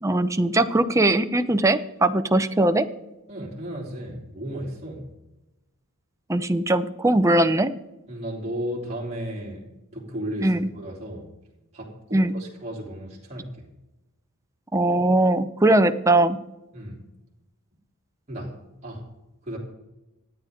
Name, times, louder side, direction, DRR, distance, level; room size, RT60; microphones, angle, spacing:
voice 1, 0.0-2.9 6.3-7.7 10.4-10.7 12.1-12.3 14.7-16.4, right 1 dB, 15° right, 8 dB, 0.6 m, -20 dB
voice 2, 3.3-5.1 8.1-9.6 9.9-11.3 11.7-13.5 16.7-17.0 18.3-18.5 18.8-19.0 19.4-19.6, equal, 30° right, -3 dB, 3.2 m, -34 dB
26.0 x 9.3 x 3.7 m, 0.98 s
head